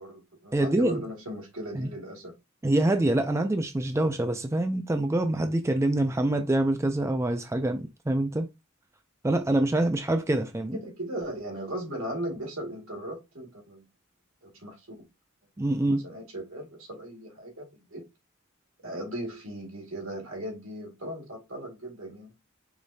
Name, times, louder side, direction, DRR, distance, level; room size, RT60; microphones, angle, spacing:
voice 1, 0.0-2.3 10.7-13.8 14.4-15.0 15.8-18.0 18.8-22.3, right 1 dB, 75° right, 1.9 m, -37 dB
voice 2, 0.5-1.0 1.7-1.9 2.6-8.5 9.2-10.8 15.6-16.0, right 1 dB, 15° right, 0.4 m, -25 dB
4.9 x 3.1 x 2.7 m
head